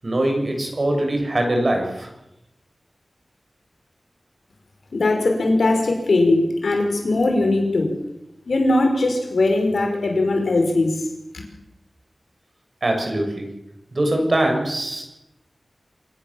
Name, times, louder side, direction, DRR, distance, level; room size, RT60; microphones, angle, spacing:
voice 1, 0.0-2.1 12.8-13.5 13.9-15.0, right 1 dB, 45° right, 3 dB, 7.1 m, -22 dB
voice 2, 4.9-7.9 8.5-11.0, left 2 dB, 85° left, 3 dB, 5.7 m, -20 dB
27.0 x 18.0 x 7.4 m, 0.90 s
wide cardioid pair, 90°, 0 cm